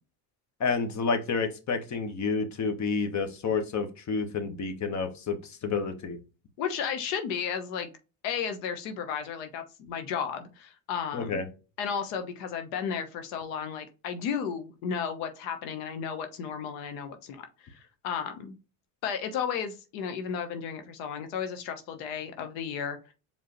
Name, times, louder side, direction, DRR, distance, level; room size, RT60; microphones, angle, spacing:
voice 1, 0.6-6.2 11.1-11.4, left 4 dB, 40° left, 7 dB, 1.3 m, -29 dB
voice 2, 6.6-7.9 8.2-11.4 11.8-18.5 19.0-23.1, left 7 dB, 85° left, 7 dB, 1.0 m, -34 dB
4.9 x 3.6 x 3.0 m, 0.31 s
supercardioid pair, 100°, 43 cm